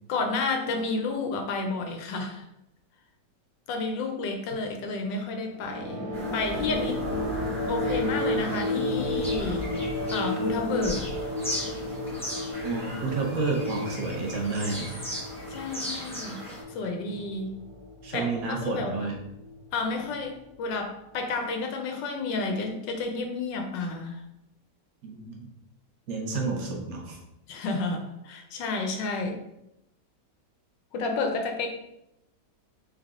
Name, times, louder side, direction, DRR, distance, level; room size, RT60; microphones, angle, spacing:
voice 1, 0.1-2.4 3.7-6.1 6.3-7.1 7.7-9.8 10.1-11.0 15.5-16.4 16.7-17.5 18.1-19.1 19.7-24.2 27.5-29.4 30.9-31.7, left 3 dB, 90° left, 4 dB, 1.4 m, -31 dB
sound 1, 5.5-20.4, left 1 dB, 25° right, 1.1 m, -33 dB
Bird vocalization bird call bird song, 6.1-16.6, left 1 dB, 5° left, 0.7 m, -37 dB
voice 2, 12.6-14.9 18.0-19.1 25.0-25.5 26.1-27.2, right 3 dB, 60° right, 1 dB, 1.2 m, -30 dB
3.8 x 3.3 x 3.6 m, 0.85 s
omnidirectional pair, 1.9 m